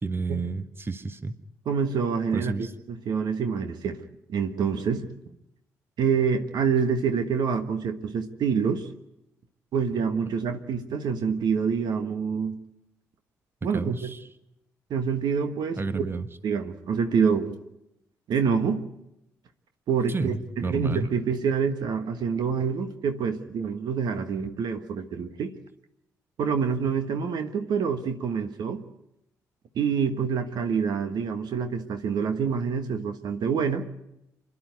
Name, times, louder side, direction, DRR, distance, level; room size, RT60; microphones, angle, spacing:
voice 1, 0.0-1.3 2.3-2.7 13.7-14.2 15.7-16.3 20.1-21.1, right 3 dB, 30° right, 11 dB, 1.3 m, -31 dB
voice 2, 1.6-2.5 3.1-4.0 4.3-5.1 6.0-8.9 9.7-12.6 13.6-13.9 14.9-16.1 16.4-17.6 18.3-18.8 19.9-20.4 20.7-25.5 26.4-28.8 29.7-33.8, right 6 dB, 65° right, 7 dB, 1.4 m, -26 dB
27.0 x 11.0 x 9.5 m, 0.87 s
hypercardioid pair, 45°, 8 cm